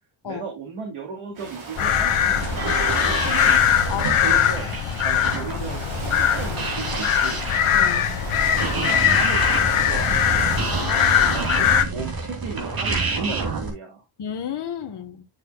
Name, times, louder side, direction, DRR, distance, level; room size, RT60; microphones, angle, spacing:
voice 1, 0.2-2.4 2.9-3.5 4.2-4.7 5.0-7.4 8.6-10.5 11.3-14.0, right 5 dB, 90° right, 2.5 m, -35 dB
Ocean, 1.3-10.8, right 3 dB, 70° right, 3.6 m, -37 dB
sound 1, 1.7-11.8, left 9 dB, 90° left, 1.1 m, -21 dB
sound 2, 1.8-13.7, right 3 dB, 45° right, 2.8 m, -29 dB
voice 2, 3.9-4.4 7.7-8.1 10.7-11.4 14.2-15.3, left 8 dB, 55° left, 1.2 m, -32 dB
10.5 x 6.3 x 2.2 m
wide cardioid pair, 165°, 49 cm